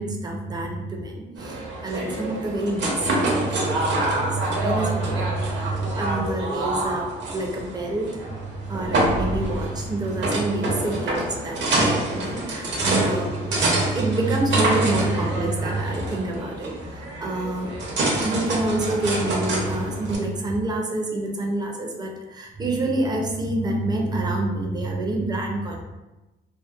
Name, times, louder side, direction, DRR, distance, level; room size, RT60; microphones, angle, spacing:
voice 1, 0.0-8.1 8.7-13.4 13.7-17.8 18.2-25.8, right 2 dB, 20° right, 0 dB, 0.5 m, -27 dB
sound 1, 1.4-20.2, right 1 dB, 65° right, 0.7 m, -27 dB
2.6 x 2.1 x 2.4 m, 1.1 s
cardioid pair, 90°, 20 cm